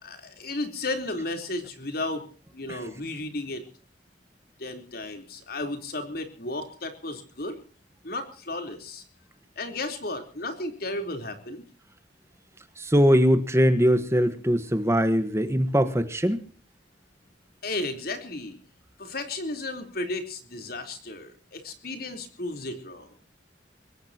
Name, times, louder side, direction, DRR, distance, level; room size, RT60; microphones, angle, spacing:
voice 1, 0.0-2.3 2.5-3.6 4.6-7.6 8.0-9.0 9.6-11.6 17.6-18.6 19.0-23.1, left 2 dB, 55° left, 6 dB, 3.8 m, -34 dB
voice 2, 12.8-16.4, equal, 15° right, 10 dB, 1.3 m, -21 dB
23.5 x 20.0 x 2.9 m, 0.41 s
head